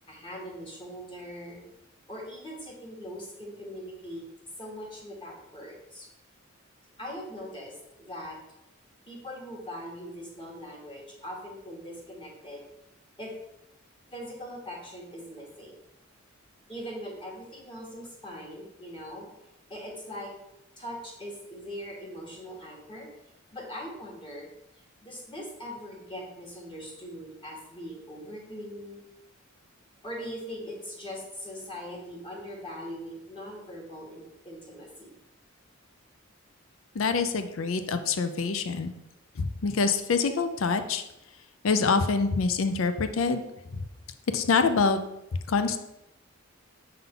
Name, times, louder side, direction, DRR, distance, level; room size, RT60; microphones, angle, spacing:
voice 1, 0.1-1.7 2.1-4.3 4.6-6.1 7.0-8.4 9.1-12.6 13.2-13.3 14.1-15.8 16.7-19.3 19.7-20.3 20.8-23.1 23.5-24.5 24.7-29.0 30.0-35.1, equal, 25° left, -2 dB, 1.6 m, -41 dB
voice 2, 37.0-38.9 39.4-41.0 41.6-43.4 43.7-43.8 44.3-45.0 45.5-45.8, left 4 dB, 70° left, 9 dB, 0.5 m, -25 dB
6.9 x 3.7 x 3.8 m, 0.87 s
head